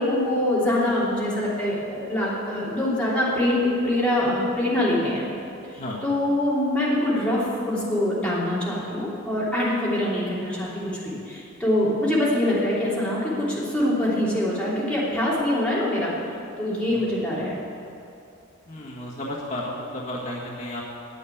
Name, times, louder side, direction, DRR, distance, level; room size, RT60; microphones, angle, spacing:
voice 1, 0.0-5.2 6.0-16.1 16.6-17.5, left 1 dB, 5° left, -8 dB, 3.0 m, -24 dB
voice 2, 16.9-17.5 18.7-20.8, left 1 dB, 40° left, -6 dB, 1.6 m, -33 dB
9.4 x 8.5 x 8.5 m, 2.6 s
head